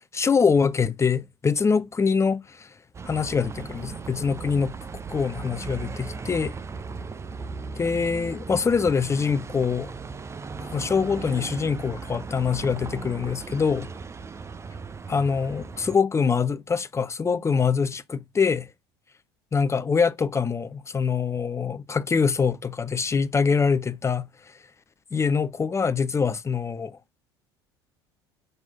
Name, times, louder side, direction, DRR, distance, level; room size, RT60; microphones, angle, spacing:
voice 1, 0.1-2.7 3.0-4.7 5.1-6.5 7.8-9.9 10.6-13.9 15.1-18.7 19.5-24.6 25.1-27.0, left 5 dB, 20° left, 0.7 m, -24 dB
Bus, 2.9-16.0, right 4 dB, 20° right, 0.7 m, -37 dB
6.1 x 5.5 x 5.6 m
figure-of-eight pair, 65°, 14 cm